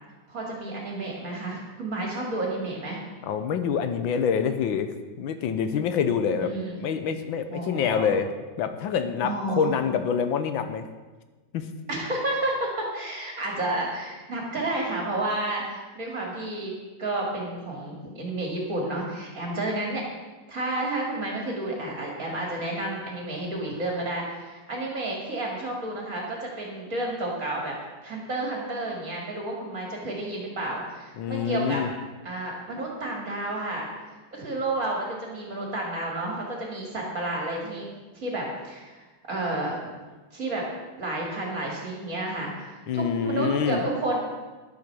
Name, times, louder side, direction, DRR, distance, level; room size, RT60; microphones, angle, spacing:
voice 1, 0.3-3.0 6.4-6.8 7.5-8.1 9.2-9.7 11.9-20.0 20.5-27.7 28.0-31.8 32.2-33.9 34.3-37.9 38.1-39.8 40.3-40.7 41.0-44.2, right 2 dB, 45° right, -2 dB, 2.7 m, -31 dB
voice 2, 3.2-8.3 8.6-10.9 11.5-11.7 31.2-31.9 42.9-43.8, left 7 dB, 85° left, 9 dB, 1.6 m, -26 dB
11.0 x 8.2 x 6.9 m, 1.3 s
omnidirectional pair, 2.1 m